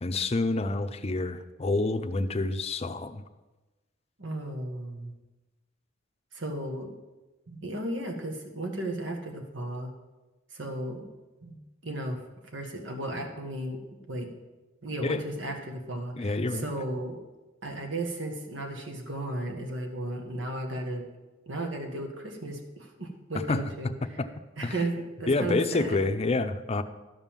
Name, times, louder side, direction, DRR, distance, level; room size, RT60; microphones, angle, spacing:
voice 1, 0.0-3.2 15.0-15.2 16.2-16.7 23.5-23.6 24.2-24.3 24.6-24.7 25.3-26.8, left 3 dB, 35° left, 8 dB, 0.6 m, -28 dB
voice 2, 4.2-5.1 6.3-7.0 7.5-9.9 10.5-11.0 11.4-12.2 12.5-13.8 14.1-14.3 14.8-17.2 17.6-21.0 21.4-24.2 24.6-26.1, right 1 dB, 70° right, 4 dB, 1.6 m, -35 dB
12.0 x 5.4 x 7.3 m, 1.1 s
head